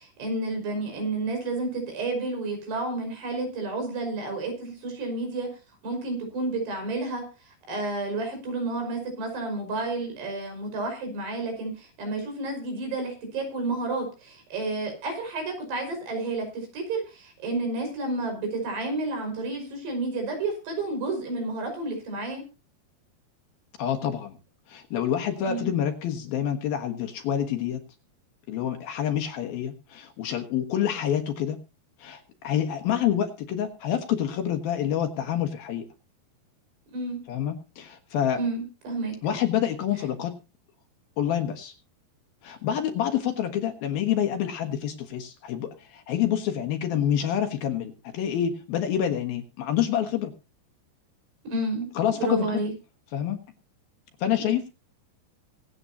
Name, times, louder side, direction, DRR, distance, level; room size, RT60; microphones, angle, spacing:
voice 1, 0.0-5.5 5.8-22.4 25.5-25.7 36.9-37.2 38.4-39.2 51.4-51.9 52.2-52.7 54.4-54.6, right 2 dB, 70° right, 4 dB, 7.2 m, -31 dB
voice 2, 23.8-24.4 24.7-27.8 28.5-31.6 32.0-35.9 37.3-38.4 39.2-40.3 41.2-41.7 42.4-50.3 52.0-52.6 53.1-53.4 54.2-54.7, left 10 dB, 65° left, 5 dB, 3.0 m, -27 dB
24.5 x 8.9 x 2.8 m, 0.30 s
omnidirectional pair, 4.9 m